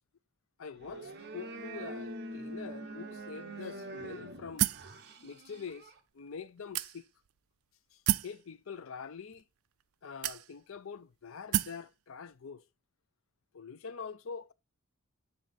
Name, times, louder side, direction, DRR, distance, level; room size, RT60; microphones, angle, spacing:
voice 1, 0.6-4.7 5.2-7.1 7.9-9.4 10.0-12.6 13.5-14.5, left 6 dB, 65° left, 0.5 m, -45 dB
sound 1, 0.8-6.0, right 1 dB, 50° right, 1.1 m, -44 dB
sound 2, 4.6-4.9 5.7-5.8 6.7-7.3 8.1-8.4 9.3-9.4 10.2-10.8 11.5-11.8, right 12 dB, 80° right, 0.4 m, -30 dB
7.6 x 3.7 x 4.0 m
head